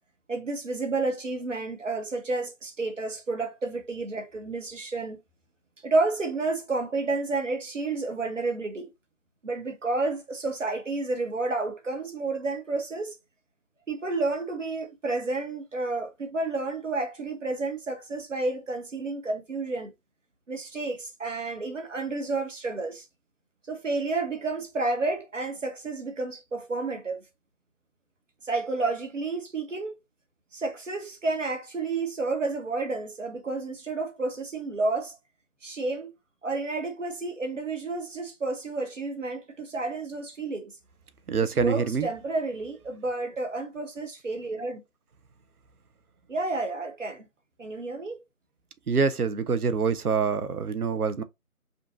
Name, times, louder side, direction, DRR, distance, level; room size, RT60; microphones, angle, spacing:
voice 1, 0.3-5.2 5.8-8.9 9.4-13.1 13.9-19.9 20.5-23.0 23.7-27.2 28.4-29.9 30.5-35.2 35.6-36.1 36.4-40.7 41.4-44.8 46.3-47.3 47.6-48.2, right 3 dB, 55° right, 1.1 m, -30 dB
voice 2, 41.3-42.1 48.9-51.2, right 5 dB, 80° right, 0.7 m, -25 dB
5.3 x 2.5 x 2.5 m
figure-of-eight pair, 165°, 44 cm